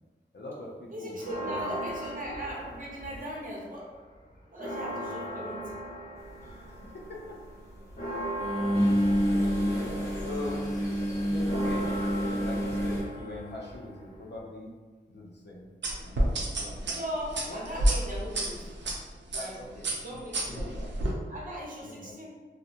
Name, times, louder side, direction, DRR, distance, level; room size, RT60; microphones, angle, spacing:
voice 1, 0.3-1.7 6.7-7.4 8.7-9.3 9.5-10.7 11.2-14.7 15.1-15.7 16.0-17.0 17.4-17.8 19.3-20.2 20.5-21.2 21.8-22.1, left 2 dB, 65° left, -2 dB, 0.6 m, -42 dB
voice 2, 0.9-3.9 4.5-5.7 16.9-18.7 19.3-20.7 21.3-22.3, equal, 45° right, -5 dB, 0.8 m, -38 dB
Church bell, 1.2-3.5 3.9-4.0 4.3-14.4, right 1 dB, 40° left, 0.9 m, -39 dB
sound 1, 6.4-6.5 8.4-13.0, equal, 15° left, 0.7 m, -28 dB
sound 2, 15.8-18.9 19.3-19.5 19.8-21.1, right 1 dB, 70° right, 0.5 m, -28 dB
2.8 x 2.1 x 2.5 m, 1.3 s
cardioid pair, 55°, 19 cm